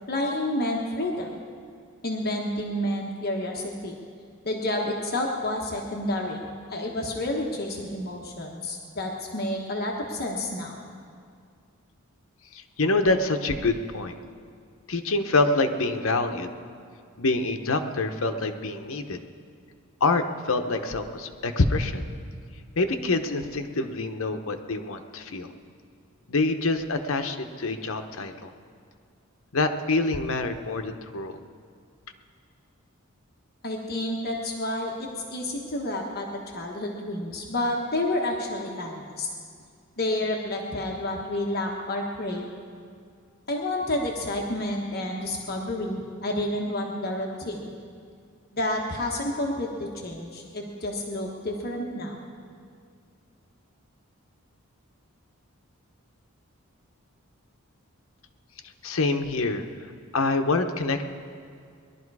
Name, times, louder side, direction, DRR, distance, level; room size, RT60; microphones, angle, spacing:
voice 1, 0.1-1.4 2.0-4.0 4.4-6.4 6.7-10.8 33.6-39.3 40.0-42.5 43.5-47.7 48.5-52.3, left 1 dB, 45° left, -1 dB, 1.2 m, -30 dB
voice 2, 12.5-14.1 14.9-16.5 17.2-19.2 20.0-22.0 22.8-25.5 26.3-28.5 29.5-31.3 58.8-59.7 60.1-61.0, left 3 dB, 70° left, 6 dB, 0.9 m, -26 dB
20.5 x 11.5 x 4.8 m, 2.2 s
head